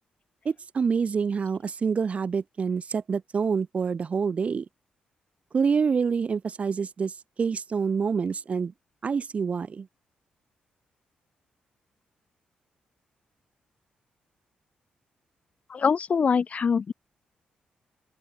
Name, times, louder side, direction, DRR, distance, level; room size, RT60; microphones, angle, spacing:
voice 1, 0.4-4.7 5.5-8.7 9.0-9.9, right 5 dB, 50° right, 0.8 m, -27 dB
voice 2, 15.7-16.9, left 6 dB, 50° left, 1.3 m, -24 dB
open air
cardioid pair, 65°, 3 cm